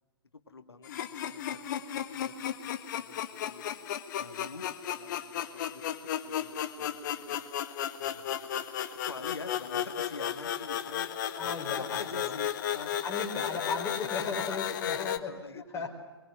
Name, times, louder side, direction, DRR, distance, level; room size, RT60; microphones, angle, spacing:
voice 1, 0.5-1.6 1.9-3.7 4.2-7.4 8.0-11.1 11.4-13.2 14.2-15.9, left 4 dB, 75° left, 9 dB, 2.1 m, -46 dB
sound 1, 0.8-15.2, left 10 dB, 45° left, 1.6 m, -34 dB
voice 2, 11.4-12.3 13.0-15.9, left 4 dB, 20° left, 1 dB, 4.9 m, -36 dB
23.5 x 22.5 x 9.7 m, 1.2 s
figure-of-eight pair, 110°, 14 cm